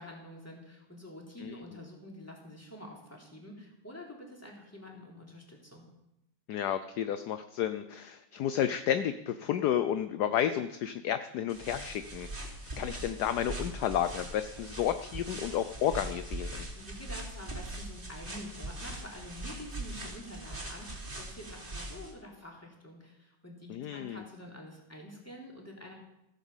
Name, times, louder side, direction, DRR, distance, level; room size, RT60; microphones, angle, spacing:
voice 1, 0.0-5.9 16.7-25.9, left 1 dB, 5° left, -1 dB, 3.4 m, -47 dB
voice 2, 6.5-16.7 23.7-24.2, left 10 dB, 65° left, 10 dB, 1.0 m, -32 dB
sound 1, 11.5-22.1, right 1 dB, 25° right, 3.3 m, -41 dB
15.0 x 10.0 x 7.3 m, 0.86 s
omnidirectional pair, 2.3 m